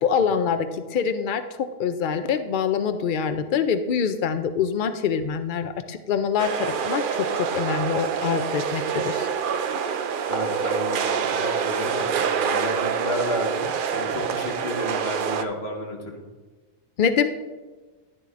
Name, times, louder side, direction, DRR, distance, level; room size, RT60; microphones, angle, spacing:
voice 1, 0.0-9.3 17.0-17.3, left 7 dB, 90° left, 9 dB, 0.4 m, -25 dB
sound 1, 6.4-15.4, right 7 dB, 70° right, 0.5 m, -26 dB
voice 2, 10.3-16.2, equal, 50° left, 1 dB, 1.6 m, -32 dB
10.5 x 10.5 x 2.5 m, 1.3 s
omnidirectional pair, 1.4 m